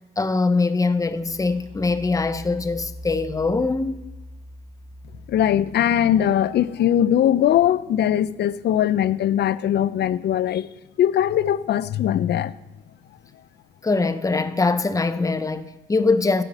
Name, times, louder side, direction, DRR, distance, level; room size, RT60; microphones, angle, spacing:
voice 1, 0.2-4.0 13.8-16.4, left 3 dB, 15° left, 0.6 m, -22 dB
sound 1, 0.8-8.5, equal, 30° right, 1.1 m, -43 dB
voice 2, 5.3-10.7 11.0-12.5, left 10 dB, 60° left, 0.4 m, -20 dB
14.5 x 5.6 x 4.1 m
cardioid pair, 90°, 20 cm